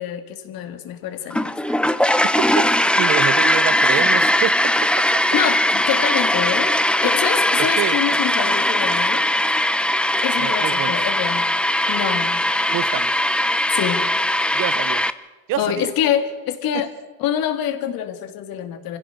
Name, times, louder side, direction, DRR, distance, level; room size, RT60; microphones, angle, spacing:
voice 1, 0.0-1.5 5.3-6.7 7.0-9.2 10.2-11.4 11.9-12.4 13.7-14.1 15.6-16.9 17.2-19.0, left 10 dB, 60° left, 8 dB, 2.4 m, -25 dB
sound 1, 1.3-15.1, left 1 dB, 5° left, 0.8 m, -19 dB
voice 2, 2.2-4.7 7.6-8.0 10.4-10.9 12.7-13.1 14.5-15.1 15.5-15.9 16.7-16.9, right 14 dB, 55° right, 18 dB, 0.9 m, -27 dB
24.5 x 16.0 x 6.7 m, 1.3 s
supercardioid pair, 95°, 39 cm